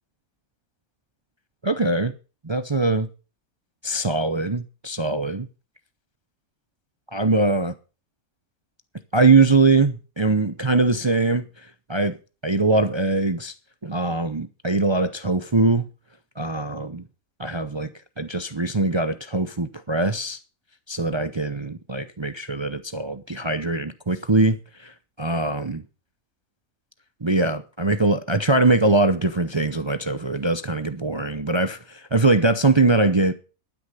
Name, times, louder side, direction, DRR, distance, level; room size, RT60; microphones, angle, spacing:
voice 1, 1.6-2.1 2.4-3.1 3.8-5.5 7.1-7.7 9.1-11.4 11.9-12.2 12.4-13.5 13.8-15.9 16.4-17.0 17.4-17.9 18.2-20.4 20.9-24.6 24.8-25.8 27.2-33.3, right 3 dB, 30° right, 0.6 m, -22 dB
12.0 x 9.8 x 5.6 m
omnidirectional pair, 1.5 m